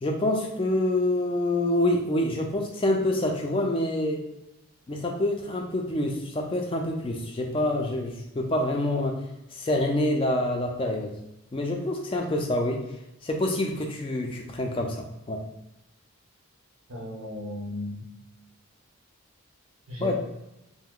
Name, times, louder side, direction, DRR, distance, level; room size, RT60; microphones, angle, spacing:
voice 1, 0.0-4.2 4.9-9.2 9.5-11.1 11.5-12.8 13.2-15.4 20.0-20.2, left 1 dB, 25° left, 2 dB, 0.3 m, -26 dB
voice 2, 16.9-18.0 19.9-20.2, left 1 dB, 85° right, -4 dB, 0.8 m, -35 dB
2.7 x 2.0 x 3.6 m, 0.89 s
head